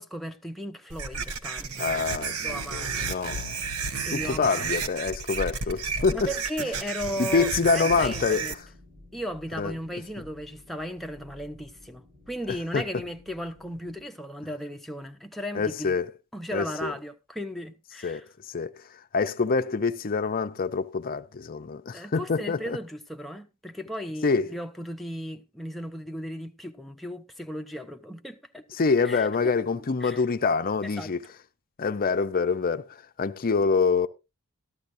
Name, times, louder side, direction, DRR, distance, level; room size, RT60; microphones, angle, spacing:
voice 1, 0.0-1.9 2.4-3.2 4.0-4.7 6.1-8.5 9.1-16.0 16.3-18.2 21.9-28.6 29.0-29.3 30.0-30.2 30.8-31.1, equal, ahead, 0.7 m, -36 dB
sound 1, 0.9-8.5, right 5 dB, 80° right, 0.9 m, -32 dB
voice 2, 1.8-3.7 4.1-6.3 6.6-6.7 7.2-8.4 9.6-9.7 12.5-12.8 15.5-16.1 16.5-16.9 18.0-18.8 19.1-22.8 24.2-24.5 28.7-31.2 31.8-34.1, left 4 dB, 40° left, 0.6 m, -26 dB
sound 2, 8.4-14.1, left 2 dB, 30° right, 6.0 m, -53 dB
14.0 x 12.0 x 2.6 m
head